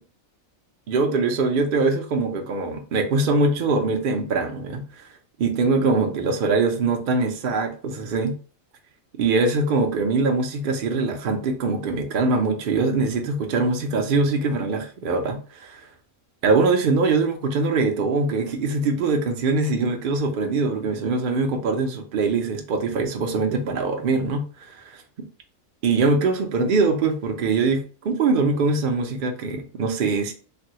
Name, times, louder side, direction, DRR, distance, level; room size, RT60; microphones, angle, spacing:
voice 1, 0.9-5.1 5.4-8.4 9.2-15.8 16.4-25.0 25.8-30.3, right 3 dB, 70° right, 4 dB, 0.5 m, -23 dB
3.3 x 2.2 x 2.8 m, 0.38 s
omnidirectional pair, 1.6 m